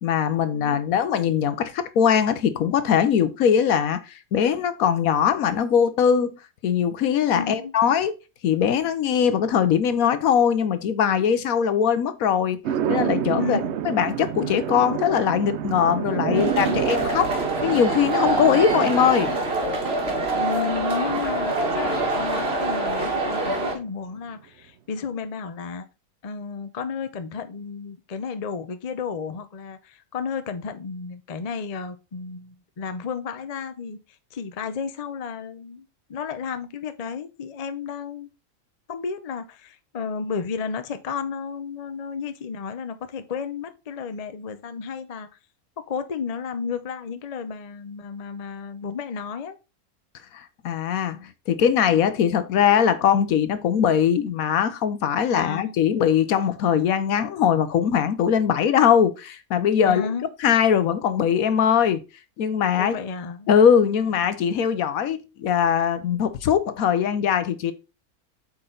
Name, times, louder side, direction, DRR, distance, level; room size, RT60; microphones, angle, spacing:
voice 1, 0.0-6.3 6.6-8.1 8.4-12.6 12.9-17.3 17.6-19.3 50.3-60.0 60.4-62.0 62.4-63.0 63.5-67.7, left 8 dB, 70° left, 1.2 m, -21 dB
voice 2, 0.5-0.9 7.3-7.7 13.4-13.8 16.3-17.0 20.3-25.9 26.2-34.0 34.3-35.8 36.1-38.3 38.9-45.3 45.9-49.6 55.1-55.7 59.8-60.3 62.8-63.5, left 5 dB, 40° left, 0.5 m, -32 dB
sound 1, 12.6-23.0, right 9 dB, 65° right, 0.7 m, -30 dB
sound 2, 16.3-23.7, right 2 dB, 45° right, 1.9 m, -25 dB
8.1 x 4.4 x 3.8 m
omnidirectional pair, 1.6 m